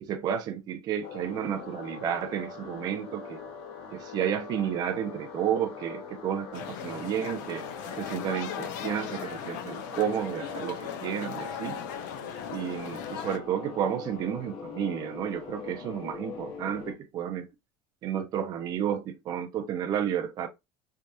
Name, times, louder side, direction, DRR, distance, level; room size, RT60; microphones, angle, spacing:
voice 1, 0.0-3.4 3.9-7.7 8.0-11.8 12.5-17.5 18.0-20.5, right 9 dB, 40° right, 0.5 m, -31 dB
sound 1, 1.0-16.9, left 5 dB, 65° left, 1.3 m, -42 dB
sound 2, 6.5-13.4, left 8 dB, 85° left, 0.7 m, -38 dB
3.4 x 2.3 x 2.6 m
cardioid pair, 130°, 10 cm